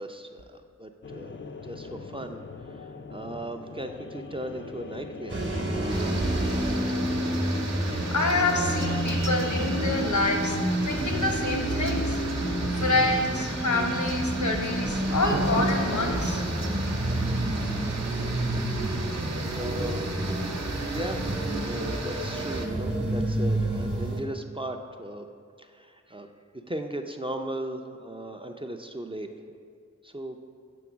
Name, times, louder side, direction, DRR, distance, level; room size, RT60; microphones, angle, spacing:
voice 1, 0.0-2.4 3.1-5.4 19.5-20.0 20.9-21.2 21.6-25.3 25.6-26.3 26.7-29.3 30.0-30.4, right 1 dB, 20° right, 4 dB, 0.4 m, -37 dB
sound 1, 1.0-13.3, left 4 dB, 40° left, 0.4 m, -41 dB
sound 2, 5.3-24.2, right 1 dB, 40° right, 1.0 m, -29 dB
sound 3, 5.9-22.7, right 3 dB, 65° right, 0.7 m, -37 dB
voice 2, 8.1-16.4, left 2 dB, 75° left, 3 dB, 0.9 m, -27 dB
7.0 x 3.8 x 6.0 m, 2.2 s
wide cardioid pair, 60°, 29 cm